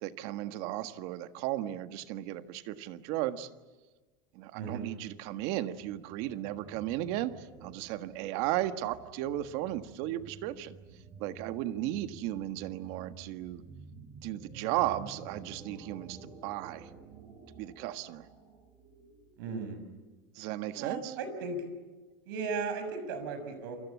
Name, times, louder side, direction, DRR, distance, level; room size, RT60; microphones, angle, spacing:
voice 1, 0.0-3.5 4.3-10.8 11.2-13.6 14.2-16.9 17.6-18.3 20.3-21.1, right 14 dB, 60° right, 10 dB, 1.6 m, -35 dB
voice 2, 4.5-4.9 19.4-19.8 20.7-21.6 22.2-23.8, right 4 dB, 85° right, 9 dB, 6.4 m, -36 dB
sound 1, 5.3-19.5, right 5 dB, 40° right, 7.1 m, -51 dB
28.5 x 24.5 x 8.4 m, 1.3 s
supercardioid pair, 145°, 11 cm